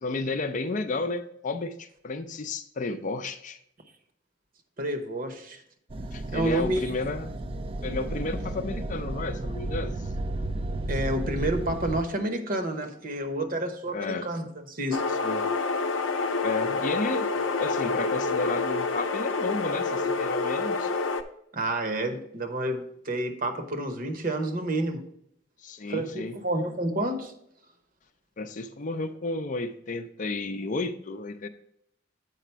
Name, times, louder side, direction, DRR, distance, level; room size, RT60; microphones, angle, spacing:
voice 1, 0.0-3.6 6.1-7.3 7.8-10.0 13.9-14.3 15.2-15.4 16.4-17.3 17.6-20.9 25.6-26.4 28.4-31.5, left 3 dB, 40° left, 8 dB, 0.5 m, -32 dB
voice 2, 4.8-5.6 6.3-7.0 10.9-15.0 21.5-25.1 25.9-27.3, right 1 dB, 50° right, 5 dB, 1.0 m, -29 dB
sound 1, 5.9-12.0, right 1 dB, 30° right, 0.4 m, -33 dB
sound 2, 14.9-21.2, left 3 dB, 90° left, 0.6 m, -28 dB
8.3 x 5.0 x 4.5 m, 0.71 s
head